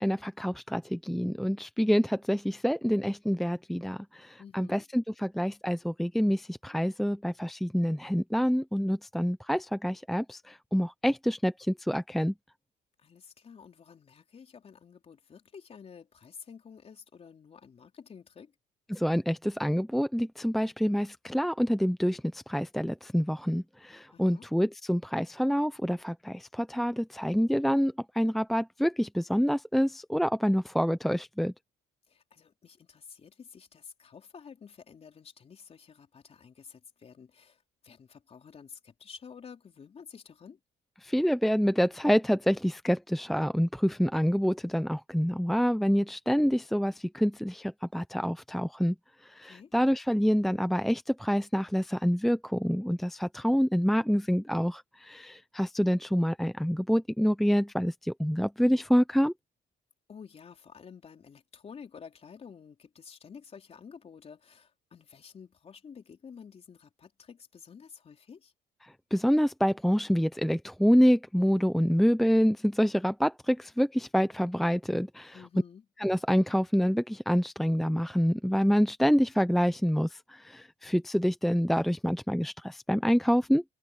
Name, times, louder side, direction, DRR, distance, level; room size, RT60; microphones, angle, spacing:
voice 1, 0.0-12.3 18.9-31.5 41.0-49.0 49.2-59.3 68.8-75.4 76.0-83.6, equal, ahead, 0.7 m, -27 dB
voice 2, 4.4-4.8 13.0-18.5 24.1-24.5 32.1-40.6 49.4-49.7 60.1-68.5 75.3-75.9, left 6 dB, 35° left, 4.0 m, -50 dB
cardioid pair, 110°, 17 cm